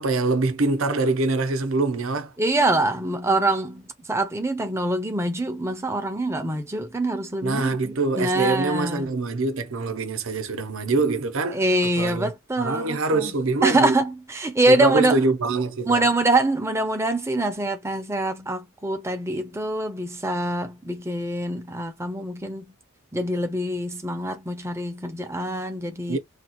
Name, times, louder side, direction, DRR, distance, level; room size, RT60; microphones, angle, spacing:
voice 1, 0.0-2.3 7.4-11.6 12.0-12.3 12.6-14.0 14.7-16.0 26.1-26.2, right 3 dB, 65° right, 0.7 m, -24 dB
voice 2, 2.4-9.1 11.5-13.3 13.6-15.2 15.9-22.7 23.1-26.2, right 2 dB, 10° right, 0.6 m, -24 dB
3.2 x 2.4 x 2.9 m
head